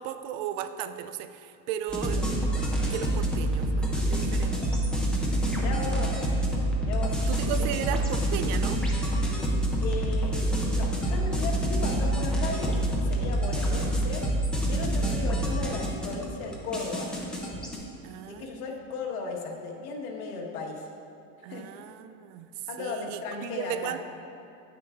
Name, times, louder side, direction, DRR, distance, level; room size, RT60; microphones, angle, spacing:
voice 1, 0.0-2.5 2.9-4.6 7.3-8.8 15.0-15.3 18.0-18.7 21.4-22.5 22.8-24.0, right 10 dB, 60° right, 11 dB, 0.5 m, -35 dB
sound 1, 1.9-17.8, right 1 dB, ahead, 0.4 m, -27 dB
voice 2, 5.4-6.2 6.9-7.8 9.8-10.3 10.7-14.2 14.7-17.1 18.3-20.9 21.5-21.7 22.7-24.0, left 4 dB, 80° left, 0 dB, 1.3 m, -36 dB
9.4 x 9.0 x 2.4 m, 2.6 s
supercardioid pair, 155°, 42 cm